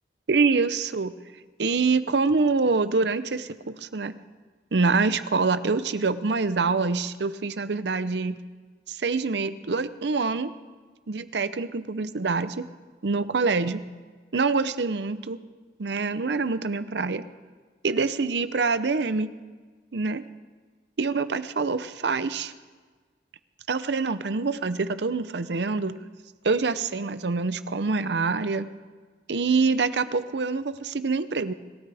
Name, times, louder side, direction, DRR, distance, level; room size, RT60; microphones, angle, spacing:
voice 1, 0.3-1.1 1.6-4.1 4.7-8.4 8.9-10.5 11.1-12.6 13.0-13.8 14.3-15.4 15.8-17.2 17.8-19.3 19.9-20.2 21.0-22.5 23.7-26.0 26.4-28.7 29.3-31.5, right 4 dB, 75° right, 13 dB, 0.7 m, -25 dB
26.0 x 13.0 x 3.5 m, 1.4 s
head